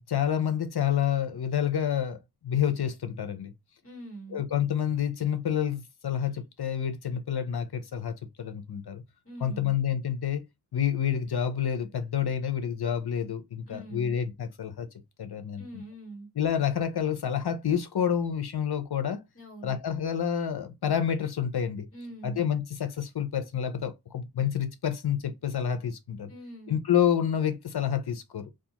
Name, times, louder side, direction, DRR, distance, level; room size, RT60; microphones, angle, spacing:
voice 1, 0.1-2.2 2.4-3.5 4.3-9.0 9.4-10.4 10.7-14.9 15.2-15.8 16.4-19.2 19.6-21.9 22.2-26.3 26.7-28.5, left 9 dB, 70° left, 0.6 m, -28 dB
voice 2, 3.8-4.4 9.2-9.8 13.7-14.2 15.6-16.3 19.3-19.8 21.9-22.4 26.3-26.8, right 1 dB, 35° left, 1.3 m, -43 dB
2.4 x 2.4 x 2.8 m
wide cardioid pair, 55°, 40 cm